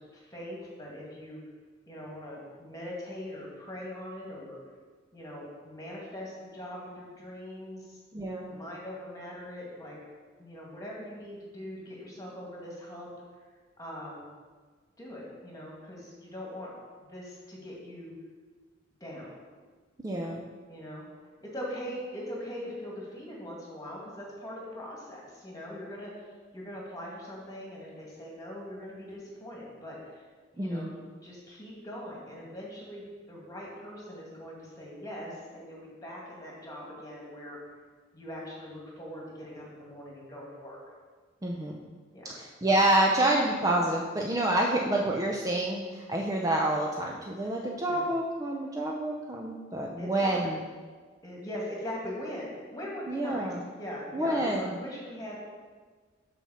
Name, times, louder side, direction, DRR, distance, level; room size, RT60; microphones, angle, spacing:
voice 1, 0.0-1.4 1.9-4.6 5.1-8.0 8.5-10.0 10.4-13.1 13.8-14.3 15.0-16.7 17.0-18.1 19.0-19.4 20.7-21.1 21.4-30.3 30.5-37.6 38.1-40.8 42.1-42.4 47.4-47.5 47.9-48.0 50.0-50.5 51.2-55.4, equal, 20° left, -3 dB, 1.9 m, -41 dB
voice 2, 8.1-8.6 20.0-20.4 30.6-30.9 41.4-41.8 42.2-50.6 53.1-53.6 54.1-54.6, right 1 dB, 20° right, -1 dB, 0.5 m, -28 dB
6.9 x 4.3 x 6.2 m, 1.5 s
head